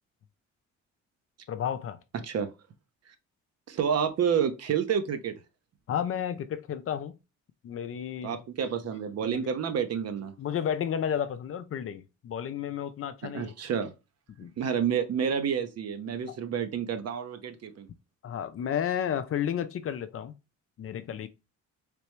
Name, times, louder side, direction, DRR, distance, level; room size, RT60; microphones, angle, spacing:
voice 1, 1.5-2.0 5.9-7.2 7.6-8.4 9.2-9.5 10.4-13.5 14.4-14.5 16.3-16.4 18.2-20.4 20.8-21.3, left 9 dB, 50° left, 0.5 m, -32 dB
voice 2, 3.7-5.4 8.2-10.3 13.3-13.9 14.6-17.9, right 7 dB, 55° right, 0.7 m, -29 dB
3.4 x 3.1 x 3.1 m
cardioid pair, 90°, 30 cm